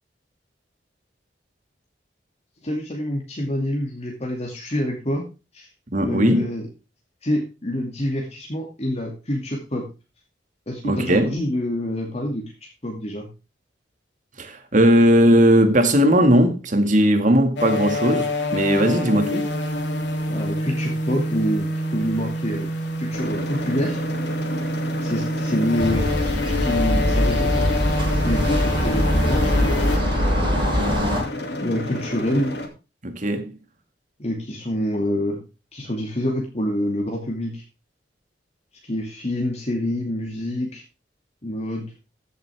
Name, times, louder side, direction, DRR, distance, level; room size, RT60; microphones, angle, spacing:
voice 1, 2.6-5.2 5.5-5.7 6.0-6.7 7.2-9.9 10.7-13.3 20.3-24.0 25.0-27.8 28.2-30.0 31.6-32.5 34.2-35.4 35.7-37.6 38.8-40.8 41.4-41.9, left 1 dB, 40° left, 2.4 m, -27 dB
voice 2, 5.9-6.5 10.8-11.3 14.4-19.5 33.0-33.6, right 1 dB, 45° right, 2.0 m, -18 dB
sound 1, 17.6-30.0, left 1 dB, 85° left, 2.8 m, -27 dB
sound 2, 23.1-32.7, left 1 dB, 70° left, 2.5 m, -31 dB
sound 3, 25.8-31.2, equal, 30° right, 6.7 m, -22 dB
15.0 x 7.9 x 3.5 m
head